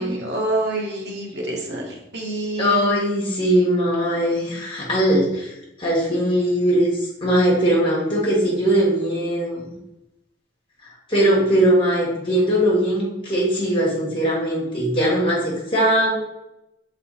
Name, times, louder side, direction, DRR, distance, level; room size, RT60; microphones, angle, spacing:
voice 1, 0.0-2.9, right 2 dB, 60° right, -1 dB, 1.5 m, -27 dB
voice 2, 2.6-5.5 5.8-9.6 11.1-16.2, right 1 dB, 30° left, -4 dB, 2.1 m, -20 dB
6.8 x 4.1 x 4.2 m, 0.90 s
head